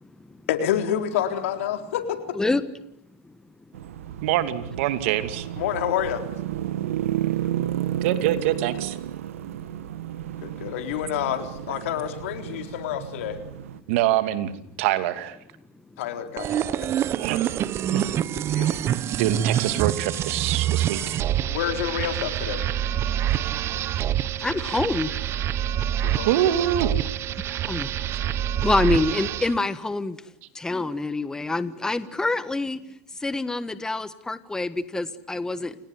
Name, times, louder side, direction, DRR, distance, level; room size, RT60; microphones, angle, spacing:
voice 1, 0.5-2.4 5.6-6.2 10.4-13.4 16.0-16.9 18.3-18.8 21.5-22.7 26.0-26.3, left 10 dB, 75° left, 7 dB, 4.0 m, -28 dB
sound 1, 3.7-13.8, right 12 dB, 85° right, 1.6 m, -32 dB
voice 2, 4.2-5.5 8.0-9.0 13.9-14.5 14.8-15.4 17.1-17.4 17.9-18.0 19.1-21.2 26.2-26.9 28.1-28.2, right 12 dB, 65° right, 11 dB, 2.7 m, -24 dB
sound 2, 16.4-29.6, right 11 dB, 35° right, 1.2 m, -26 dB
voice 3, 24.4-25.2 27.7-27.9 28.6-30.2 30.5-32.8 33.2-35.8, left 2 dB, 10° left, 14 dB, 1.4 m, -26 dB
28.5 x 19.0 x 9.7 m, 0.78 s
supercardioid pair, 115°, 7 cm